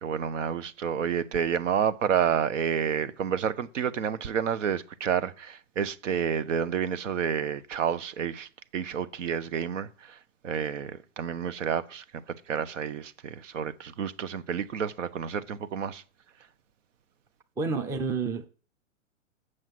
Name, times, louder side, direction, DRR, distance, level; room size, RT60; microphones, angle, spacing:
voice 1, 0.0-9.9 10.4-12.0 12.5-16.0, right 8 dB, 65° right, 1.0 m, -29 dB
voice 2, 17.6-18.5, right 4 dB, 10° right, 0.5 m, -29 dB
7.7 x 6.4 x 7.6 m
hypercardioid pair, 120°, 39 cm